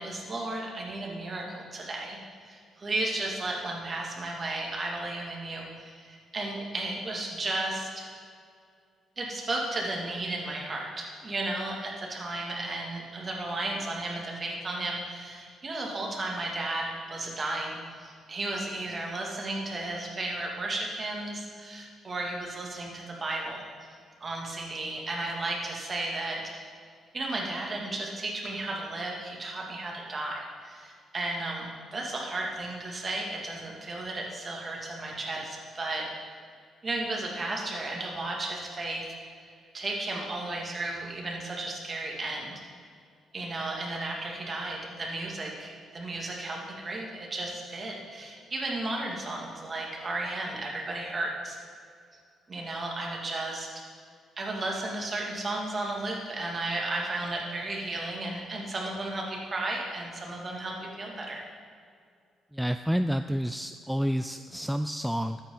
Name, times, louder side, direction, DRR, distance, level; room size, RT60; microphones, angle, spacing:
voice 1, 0.0-2.2 2.4-8.1 9.2-23.6 24.2-26.4 27.1-36.0 36.8-39.0 39.7-42.5 43.3-51.6 52.5-53.7 54.4-61.4, right 2 dB, 35° right, -1 dB, 2.5 m, -34 dB
voice 2, 62.5-65.4, equal, ahead, 9 dB, 0.3 m, -29 dB
13.0 x 8.9 x 4.0 m, 2.3 s
cardioid pair, 90°, 0 cm